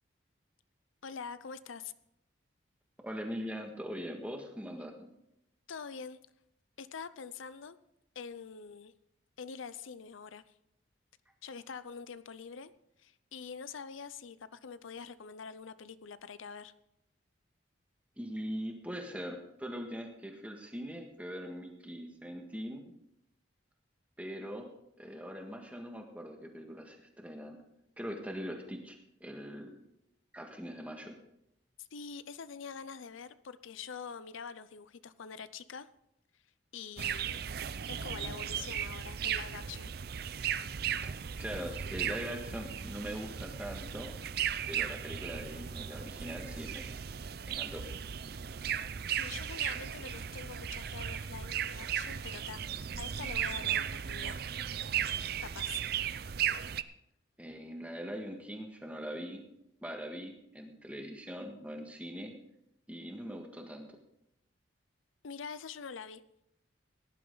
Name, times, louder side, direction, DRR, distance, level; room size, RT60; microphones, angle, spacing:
voice 1, 1.0-1.9 5.7-6.2 6.8-7.8 8.2-8.9 9.4-10.4 11.4-12.7 13.0-16.7 31.8-35.9 36.7-37.4 37.9-39.9 49.1-52.6 53.0-54.4 54.9-55.0 55.4-55.8 65.2-66.2, left 6 dB, 80° left, 14 dB, 0.6 m, -45 dB
voice 2, 3.0-5.1 18.2-22.9 24.2-24.7 25.0-27.6 28.0-29.7 30.3-31.1 41.0-44.1 44.7-46.9 47.5-47.9 57.4-59.4 59.8-62.3 62.9-63.9, equal, 5° right, 2 dB, 1.7 m, -41 dB
sound 1, 37.0-56.8, right 9 dB, 50° right, 0.5 m, -36 dB
17.5 x 11.0 x 3.9 m, 0.79 s
head